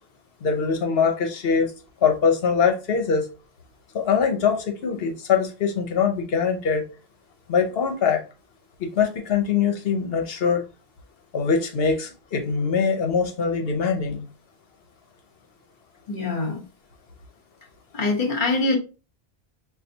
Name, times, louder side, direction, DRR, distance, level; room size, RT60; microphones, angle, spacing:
voice 1, 0.4-1.7 2.0-3.3 3.9-6.8 7.5-8.2 8.8-10.6 11.3-14.2, left 6 dB, 70° left, 1.0 m, -23 dB
voice 2, 16.1-16.6 17.9-18.8, left 3 dB, 50° left, 1.2 m, -24 dB
5.5 x 2.3 x 2.7 m
omnidirectional pair, 1.1 m